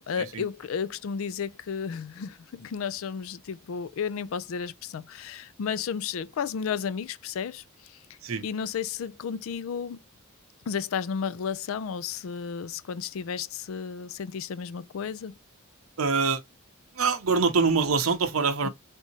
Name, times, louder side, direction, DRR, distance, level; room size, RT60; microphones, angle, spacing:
voice 1, 0.1-10.0 10.7-15.3 18.6-18.7, left 6 dB, 70° left, 0.4 m, -33 dB
voice 2, 16.0-16.4 17.0-18.7, right 4 dB, 80° right, 0.7 m, -24 dB
3.5 x 2.7 x 2.8 m
head